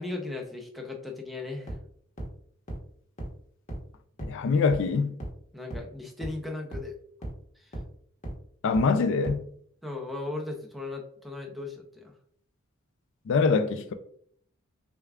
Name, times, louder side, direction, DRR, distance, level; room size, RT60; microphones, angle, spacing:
voice 1, 0.0-1.7 5.5-7.0 7.6-7.7 9.8-12.1, left 2 dB, ahead, 0.5 m, -37 dB
sound 1, 1.7-1.8 2.2-2.3 2.7-2.8 3.2-3.3 3.7-3.8 4.2-4.3 4.7-4.8 5.2-5.3 5.7-5.8 6.2-6.3 6.7-6.8 7.2-7.3 7.7-7.8 8.2-8.3 8.7-8.8 9.2-9.3, right 1 dB, 35° left, 1.0 m, -35 dB
voice 2, 4.2-5.1 8.6-9.4 13.3-13.9, left 4 dB, 60° left, 0.3 m, -24 dB
6.4 x 2.3 x 2.3 m
head